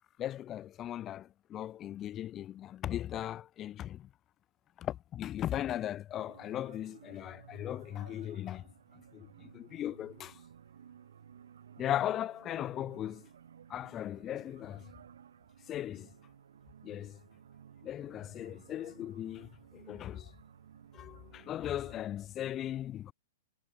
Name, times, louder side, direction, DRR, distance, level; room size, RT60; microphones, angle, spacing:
voice 1, 0.2-4.1 4.8-8.7 8.9-10.4 11.8-13.3 13.7-14.9 15.7-16.1 16.8-17.2 17.8-20.3 20.9-23.1, left 12 dB, 25° left, 1.1 m, -38 dB
sound 1, 6.2-22.0, right 8 dB, 60° right, 1.4 m, -56 dB
figure-of-eight pair, 105°, 0 cm